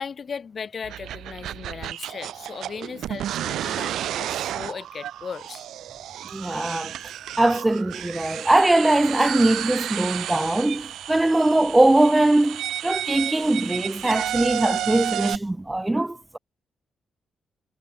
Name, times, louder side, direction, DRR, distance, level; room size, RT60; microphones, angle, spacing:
voice 1, 0.0-5.6, left 6 dB, 35° left, 4.1 m, -37 dB
sound 1, 0.8-15.4, right 12 dB, 85° right, 1.3 m, -32 dB
voice 2, 6.3-6.9 7.4-16.4, right 2 dB, 10° right, 0.8 m, -21 dB
cardioid pair, 160°, 0 cm